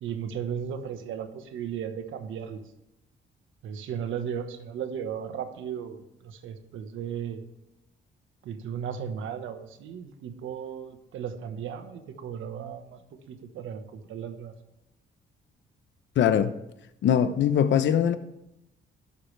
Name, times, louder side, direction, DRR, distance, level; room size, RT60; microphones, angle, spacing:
voice 1, 0.0-2.6 3.6-7.4 8.4-13.0 13.3-14.5, right 8 dB, 80° right, 1.4 m, -35 dB
voice 2, 16.2-16.5 17.0-18.2, left 9 dB, 70° left, 0.9 m, -21 dB
20.5 x 7.0 x 3.4 m
cardioid pair, 90°, 20 cm